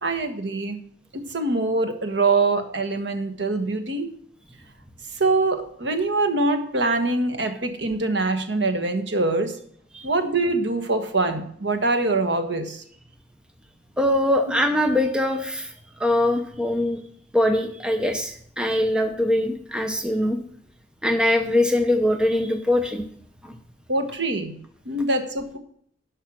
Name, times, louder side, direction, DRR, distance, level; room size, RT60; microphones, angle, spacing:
voice 1, 0.0-0.8 1.1-4.1 5.1-9.6 10.0-12.8 23.9-24.6 24.8-25.6, right 3 dB, 70° right, 7 dB, 1.4 m, -24 dB
voice 2, 14.0-15.7 16.0-17.0 17.3-20.4 21.0-23.0 23.4-23.6, left 1 dB, 5° right, 5 dB, 0.8 m, -22 dB
11.5 x 5.6 x 6.1 m, 0.63 s
head